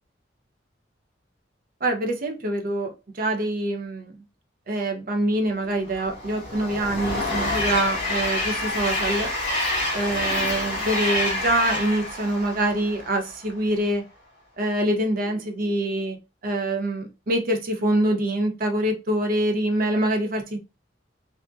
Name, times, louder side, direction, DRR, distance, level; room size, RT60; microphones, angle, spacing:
voice 1, 1.8-4.2 4.7-9.3 9.9-14.0 14.6-16.2 16.4-20.6, right 1 dB, 50° right, 0.7 m, -25 dB
Train, 5.9-13.3, left 1 dB, 30° left, 1.8 m, -27 dB
3.5 x 2.1 x 2.5 m
head